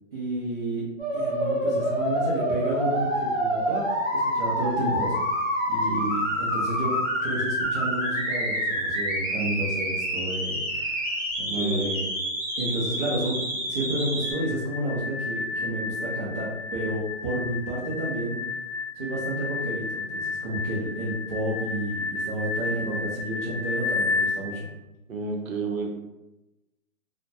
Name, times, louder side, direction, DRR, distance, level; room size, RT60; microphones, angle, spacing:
voice 1, 0.1-0.9 1.1-5.2 5.7-12.0 12.6-18.4 18.9-24.6, right 1 dB, 35° right, -9 dB, 0.6 m, -31 dB
sound 1, 1.0-14.3, equal, 5° right, 0.8 m, -27 dB
voice 2, 5.8-6.1 11.5-11.9 25.1-26.0, right 3 dB, 85° right, 1 dB, 0.7 m, -31 dB
sound 2, 14.2-24.4, left 4 dB, 55° left, 0.8 m, -32 dB
2.4 x 2.1 x 2.6 m, 1.0 s
hypercardioid pair, 160°, 40 cm